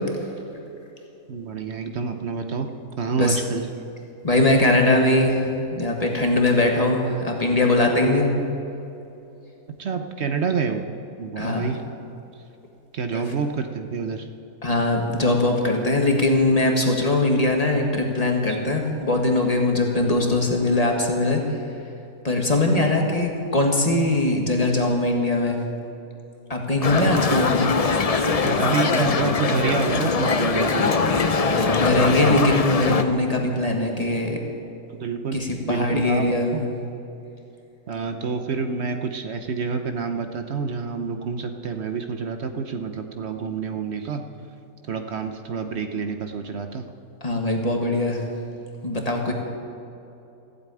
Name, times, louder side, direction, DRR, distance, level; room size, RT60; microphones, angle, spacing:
voice 1, 1.3-2.7 3.0-3.7 9.7-10.8 11.2-11.8 12.9-14.3 18.5-18.6 27.0-27.1 28.4-31.0 34.9-36.7 37.9-44.3 44.9-46.9, right 5 dB, 55° right, 7 dB, 0.9 m, -28 dB
voice 2, 4.2-8.3 11.3-11.7 14.6-21.6 22.2-25.6 26.5-27.7 31.5-34.4 35.3-36.7 47.2-48.3 48.8-49.3, left 2 dB, 25° left, 1 dB, 1.7 m, -21 dB
sound 1, 26.8-33.0, left 4 dB, 45° left, 0.5 m, -22 dB
15.5 x 8.3 x 8.9 m, 2.9 s
omnidirectional pair, 1.6 m